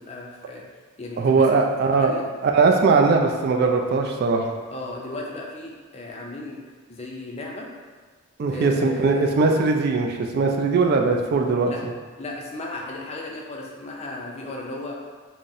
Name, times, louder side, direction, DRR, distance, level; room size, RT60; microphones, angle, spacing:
voice 1, 0.1-0.6 1.0-1.5 2.0-2.3 4.7-6.6 6.9-7.7 8.5-9.3 11.7-11.8 12.2-15.1, left 2 dB, 30° left, -1 dB, 0.4 m, -35 dB
voice 2, 1.2-2.1 2.4-4.6 8.4-11.7, right 4 dB, 50° right, 2 dB, 0.3 m, -20 dB
3.8 x 2.0 x 2.6 m, 1.5 s
head